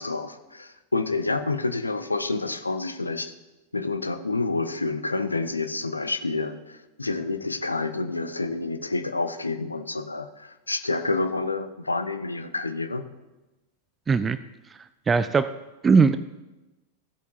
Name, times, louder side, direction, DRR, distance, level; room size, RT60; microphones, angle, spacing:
voice 1, 0.0-3.3 3.7-13.0, left 3 dB, 80° left, 10 dB, 0.6 m, -28 dB
voice 2, 14.1-14.4 15.1-15.5 15.8-16.2, right 5 dB, 20° right, 13 dB, 0.4 m, -19 dB
15.5 x 8.1 x 2.8 m, 1.1 s
figure-of-eight pair, 90°, 0 cm